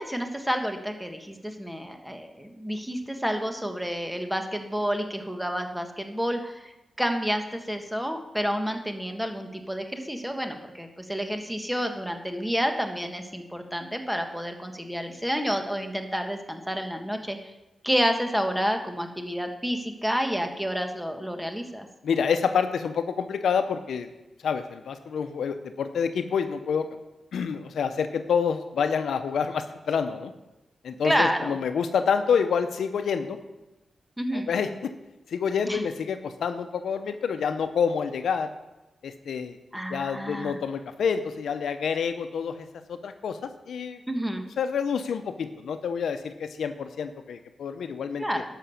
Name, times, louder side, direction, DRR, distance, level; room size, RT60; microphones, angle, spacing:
voice 1, 0.0-6.7 7.0-17.5 17.8-21.9 31.0-31.6 34.2-34.5 35.6-35.8 39.7-40.6 44.1-44.4 48.2-48.4, equal, 5° right, 5 dB, 1.4 m, -29 dB
voice 2, 22.0-24.1 24.4-26.8 27.3-30.3 30.8-33.4 34.3-34.9 35.3-38.5 39.0-39.6 39.9-44.0 44.6-48.2, left 6 dB, 85° left, 9 dB, 0.7 m, -28 dB
11.5 x 6.0 x 7.0 m, 1.0 s
cardioid pair, 70°, 0 cm